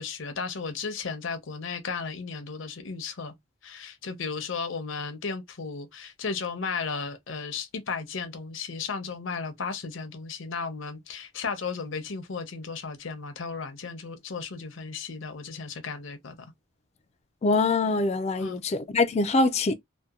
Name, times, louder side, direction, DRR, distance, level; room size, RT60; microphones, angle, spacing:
voice 1, 0.0-3.3 3.6-16.4 18.4-18.6, left 5 dB, 70° left, 0.7 m, -34 dB
voice 2, 17.4-19.7, left 3 dB, 30° left, 0.3 m, -24 dB
2.7 x 2.2 x 2.3 m
head